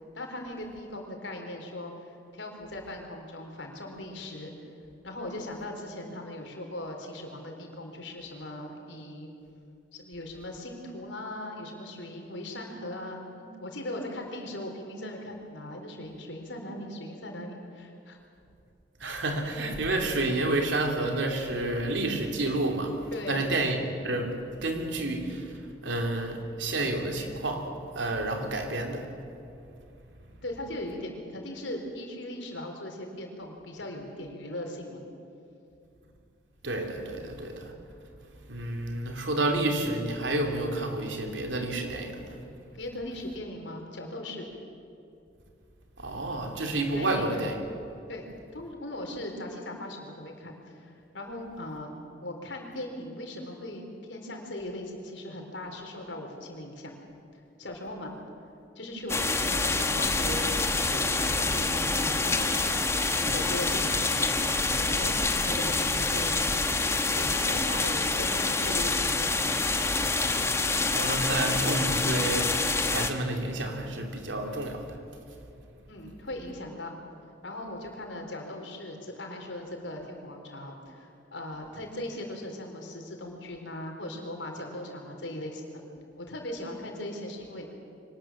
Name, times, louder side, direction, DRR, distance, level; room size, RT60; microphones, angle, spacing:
voice 1, 0.1-4.5 5.0-9.3 9.9-18.2 23.1-23.5 30.4-35.1 42.7-44.5 46.9-47.4 48.1-48.3 48.5-51.9 52.2-53.8 54.1-56.9 57.3-58.2 58.8-62.8 63.2-64.3 64.8-69.6 75.9-77.0 77.4-85.8 86.2-87.7, left 1 dB, 85° left, 2 dB, 4.3 m, -39 dB
voice 2, 19.0-27.7 27.9-29.1 36.6-37.7 38.5-42.4 46.0-47.6 70.9-75.0, right 2 dB, 85° right, 3 dB, 3.2 m, -30 dB
sound 1, 59.1-73.1, left 3 dB, 15° left, 1.2 m, -27 dB
24.0 x 19.5 x 7.6 m, 2.6 s
head